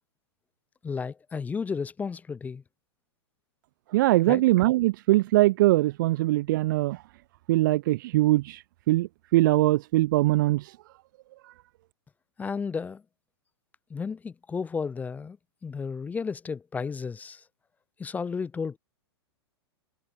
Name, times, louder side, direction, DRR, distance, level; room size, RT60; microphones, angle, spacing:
voice 1, 0.8-2.6 4.3-4.4 12.4-13.0 13.9-15.4 15.6-17.4 18.0-18.8, left 5 dB, 10° left, 0.5 m, -33 dB
voice 2, 3.9-7.0 7.5-8.6 8.9-10.6, right 18 dB, 45° right, 0.4 m, -22 dB
figure-of-eight pair, 105°, 14 cm